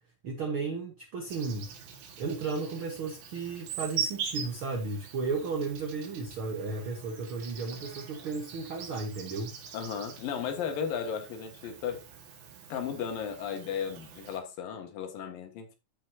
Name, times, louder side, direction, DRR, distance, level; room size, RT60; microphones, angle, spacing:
voice 1, 0.2-1.8 2.2-9.6, right 4 dB, 55° right, 1.6 m, -34 dB
Insect, 1.3-14.4, right 7 dB, 85° right, 3.6 m, -42 dB
voice 2, 9.7-12.0 12.7-15.8, left 7 dB, 80° left, 3.3 m, -35 dB
14.0 x 5.5 x 2.8 m
omnidirectional pair, 4.0 m